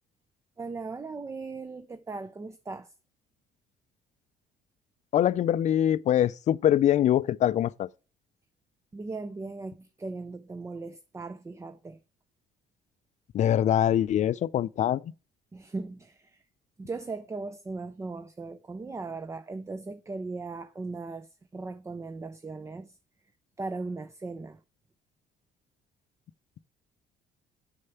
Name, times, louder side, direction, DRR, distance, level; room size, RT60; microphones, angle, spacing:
voice 1, 0.6-2.9 8.9-12.0 15.5-16.4 16.8-21.3 21.5-22.9 23.6-24.6, right 3 dB, 15° right, 0.5 m, -38 dB
voice 2, 5.1-7.9 13.3-15.0, left 11 dB, 45° left, 0.4 m, -23 dB
6.6 x 5.7 x 6.8 m
cardioid pair, 110°, 17 cm